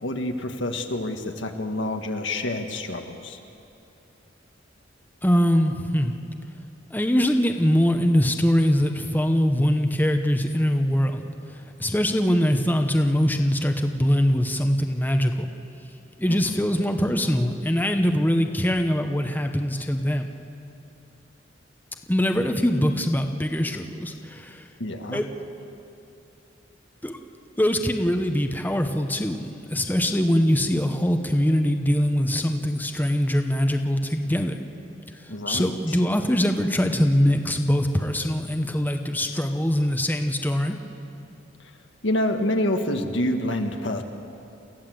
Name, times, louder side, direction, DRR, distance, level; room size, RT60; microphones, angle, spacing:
voice 1, 0.0-3.4 16.3-16.5 24.8-25.2 35.3-36.0 42.0-44.0, left 1 dB, 80° left, 5 dB, 1.6 m, -27 dB
voice 2, 5.2-6.1 6.9-11.3 11.8-15.5 16.2-20.3 22.1-24.6 25.1-25.3 27.0-27.2 27.6-34.5 35.2-40.8, equal, 10° left, 5 dB, 0.9 m, -22 dB
28.5 x 15.0 x 7.8 m, 2.7 s
head